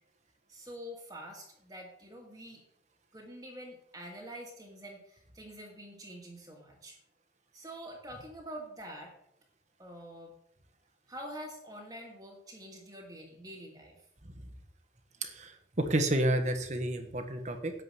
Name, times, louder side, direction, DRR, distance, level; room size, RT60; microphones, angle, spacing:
voice 1, 0.5-2.6 3.1-7.0 7.5-9.1 9.8-10.3 11.1-14.0, equal, 20° right, -1 dB, 2.0 m, -46 dB
voice 2, 15.2-17.7, right 1 dB, 40° right, 6 dB, 1.5 m, -30 dB
11.0 x 5.4 x 7.9 m, 0.73 s
head